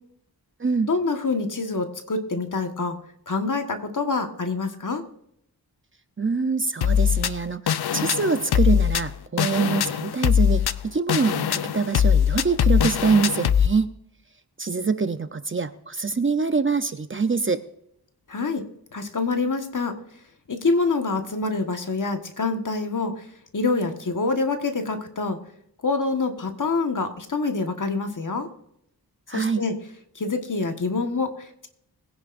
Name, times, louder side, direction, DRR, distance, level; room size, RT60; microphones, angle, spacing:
voice 1, 0.8-3.0 3.3-5.0 18.3-18.6 18.9-20.0 20.5-23.2 23.5-25.4 25.8-28.5 29.3-29.7 30.1-31.7, left 3 dB, 55° left, 5 dB, 1.6 m, -26 dB
voice 2, 6.2-13.9 14.6-17.6 29.3-29.6, right 4 dB, 30° right, 10 dB, 0.7 m, -24 dB
sound 1, 6.8-13.7, left 8 dB, 75° left, 0.6 m, -22 dB
21.0 x 10.5 x 2.6 m, 0.73 s
wide cardioid pair, 85°, 38 cm